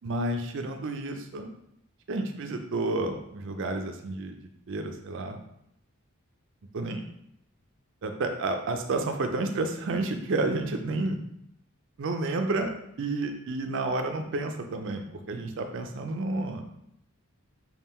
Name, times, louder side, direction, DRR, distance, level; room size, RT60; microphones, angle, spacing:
voice 1, 0.0-1.5 2.1-5.4 6.7-7.1 8.0-11.2 12.0-12.7 13.0-16.8, right 2 dB, 55° right, 5 dB, 0.4 m, -30 dB
3.6 x 2.3 x 4.2 m, 0.77 s
head